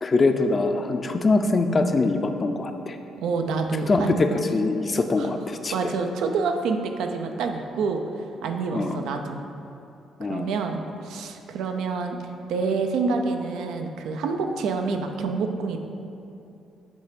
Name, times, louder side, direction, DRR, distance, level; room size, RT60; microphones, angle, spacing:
voice 1, 0.0-3.0 3.9-5.7 8.7-9.0 10.2-10.5, left 3 dB, 35° left, 6 dB, 0.5 m, -23 dB
voice 2, 3.2-4.1 5.2-5.3 5.7-8.0 8.4-9.4 10.3-12.2 12.5-15.8, right 4 dB, 85° right, 5 dB, 0.5 m, -27 dB
8.2 x 3.3 x 5.1 m, 2.7 s
cardioid pair, 90°, 0 cm